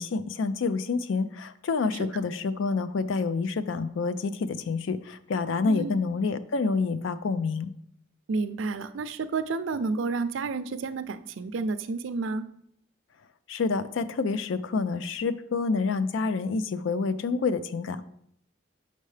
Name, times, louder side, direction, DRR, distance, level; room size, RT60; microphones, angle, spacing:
voice 1, 0.0-7.7 13.5-18.0, left 4 dB, 80° left, 13 dB, 0.4 m, -28 dB
voice 2, 8.3-12.5, right 4 dB, 80° right, 12 dB, 0.5 m, -30 dB
6.6 x 5.4 x 3.2 m, 0.72 s
head